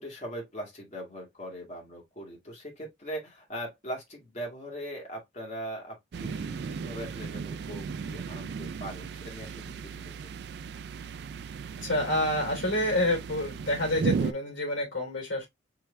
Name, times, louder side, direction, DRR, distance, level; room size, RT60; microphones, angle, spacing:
voice 1, 0.0-10.3, equal, 35° left, 2.2 m, -40 dB
sound 1, 6.1-14.3, right 5 dB, 55° right, 0.3 m, -35 dB
voice 2, 11.8-15.5, left 1 dB, 75° left, 3.0 m, -28 dB
4.7 x 3.2 x 3.3 m
head